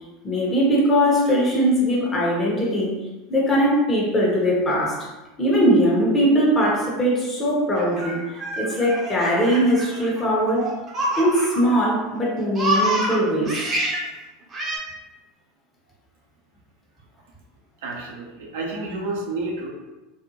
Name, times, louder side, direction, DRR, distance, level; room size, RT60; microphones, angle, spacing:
voice 1, 0.2-2.9 3.3-5.1 5.4-8.2 8.6-10.6 11.2-13.5, equal, 25° left, -4 dB, 1.0 m, -20 dB
Laughter, 7.8-11.8 12.2-14.1 14.5-14.8, right 1 dB, 30° right, 0.7 m, -27 dB
voice 2, 17.8-19.7, right 2 dB, 70° right, -1 dB, 0.5 m, -30 dB
2.6 x 2.1 x 2.8 m, 1.1 s
hypercardioid pair, 85°, 0 cm